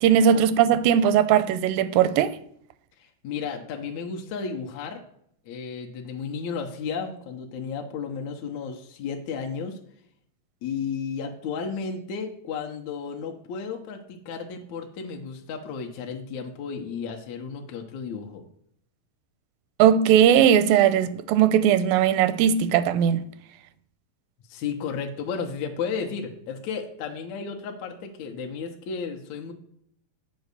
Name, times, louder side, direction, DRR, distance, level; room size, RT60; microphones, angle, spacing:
voice 1, 0.0-2.4 19.8-23.3, right 9 dB, 85° right, 2.3 m, -19 dB
voice 2, 3.0-5.0 5.5-9.8 10.6-18.4 24.5-29.5, left 6 dB, 70° left, 1.8 m, -33 dB
8.1 x 4.6 x 6.7 m
omnidirectional pair, 4.0 m